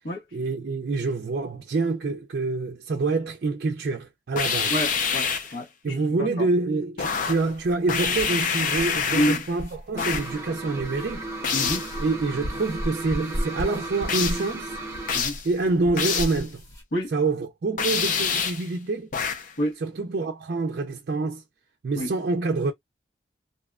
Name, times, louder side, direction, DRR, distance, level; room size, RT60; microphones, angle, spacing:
voice 1, 0.3-4.7 5.8-11.3 12.0-14.7 15.4-16.6 17.1-19.1 19.8-21.4 21.8-22.7, right 3 dB, 55° right, 0.4 m, -26 dB
sound 1, 4.3-5.6 7.0-7.5 7.9-9.6 10.0-10.4 11.4-11.9 14.1-14.5 15.1-15.5 16.0-16.4 17.8-18.7 19.1-19.5, left 6 dB, 45° left, 0.5 m, -26 dB
voice 2, 4.7-6.5 9.1-9.4 11.5-11.8 15.1-15.4 16.9-17.1 19.6-19.7 22.0-22.1, equal, 80° left, 1.0 m, -28 dB
sound 2, 7.3-16.8, equal, 20° left, 0.8 m, -37 dB
sound 3, 10.0-15.2, right 2 dB, 15° right, 0.8 m, -36 dB
2.6 x 2.2 x 2.3 m
head